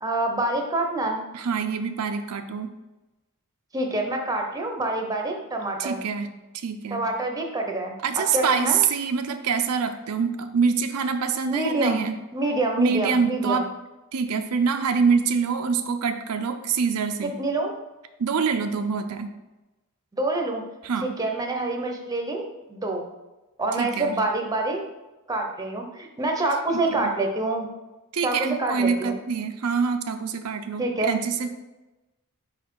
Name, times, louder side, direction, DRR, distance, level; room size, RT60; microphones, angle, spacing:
voice 1, 0.0-1.2 3.7-6.0 6.9-8.8 11.4-12.0 12.3-13.6 17.2-17.7 20.1-20.6 21.0-23.1 23.6-24.8 25.3-27.7 28.2-29.1 30.8-31.2, right 2 dB, 15° right, 2 dB, 0.7 m, -26 dB
voice 2, 1.3-2.7 5.8-6.3 6.5-7.0 8.0-12.1 12.8-13.7 14.1-17.3 18.2-19.3 20.8-21.1 23.8-24.1 26.7-27.1 28.1-31.5, right 5 dB, 90° right, 7 dB, 0.5 m, -25 dB
4.9 x 4.1 x 4.7 m, 1.1 s
head